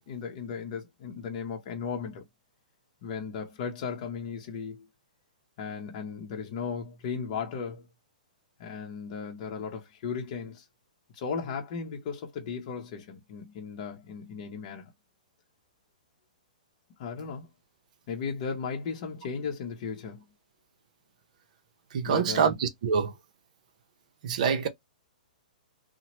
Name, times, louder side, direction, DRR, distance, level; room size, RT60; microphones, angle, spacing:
voice 1, 0.1-2.2 3.0-4.9 5.6-7.9 8.6-10.7 11.1-14.9 17.0-17.5 18.1-20.2 22.1-22.6, left 6 dB, 45° left, 0.7 m, -36 dB
voice 2, 21.9-23.1 24.2-24.7, right 6 dB, 60° right, 0.6 m, -25 dB
2.8 x 2.1 x 2.9 m
hypercardioid pair, 125°, 5 cm